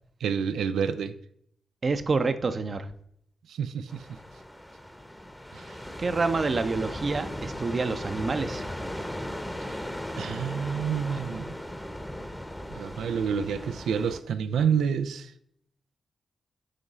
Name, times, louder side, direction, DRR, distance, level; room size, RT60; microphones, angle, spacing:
voice 1, 0.2-1.1 3.5-4.0 5.5-5.8 10.2-11.5 12.7-15.3, right 7 dB, 80° right, 11 dB, 0.4 m, -28 dB
voice 2, 1.8-2.9 6.0-8.6, right 4 dB, 50° right, 10 dB, 0.7 m, -27 dB
sound 1, 3.9-14.2, left 1 dB, 10° left, 0.9 m, -37 dB
10.0 x 3.7 x 4.1 m, 0.71 s
supercardioid pair, 45°, 0 cm